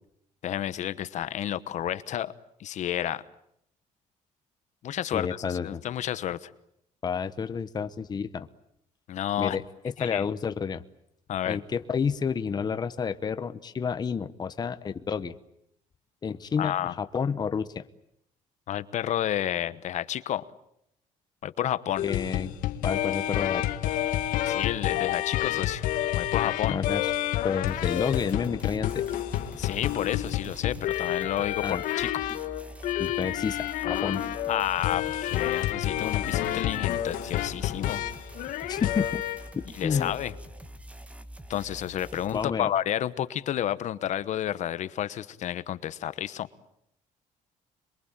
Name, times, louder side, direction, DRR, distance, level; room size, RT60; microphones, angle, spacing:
voice 1, 0.4-2.3 2.6-3.2 4.8-6.5 9.1-9.6 10.0-10.3 11.3-11.6 16.6-16.9 18.7-20.4 21.4-22.0 24.5-25.8 26.1-26.8 29.6-32.2 34.5-38.0 39.7-40.3 41.5-46.5, left 11 dB, 60° left, 14 dB, 1.1 m, -30 dB
voice 2, 5.1-5.8 7.0-8.5 9.4-9.6 10.0-10.8 11.5-15.4 16.2-17.9 22.0-22.5 22.8-23.9 26.7-27.1 27.4-29.0 31.6-31.8 33.0-34.2 38.7-39.2 39.6-40.1 42.3-42.7, left 6 dB, 30° left, 11 dB, 1.0 m, -30 dB
sound 1, 22.0-39.5 39.9-40.2, left 12 dB, 90° left, 1.8 m, -29 dB
sound 2, 27.7-42.4, right 1 dB, 10° right, 2.0 m, -45 dB
27.5 x 22.5 x 8.9 m, 0.74 s
cardioid pair, 135°, 14 cm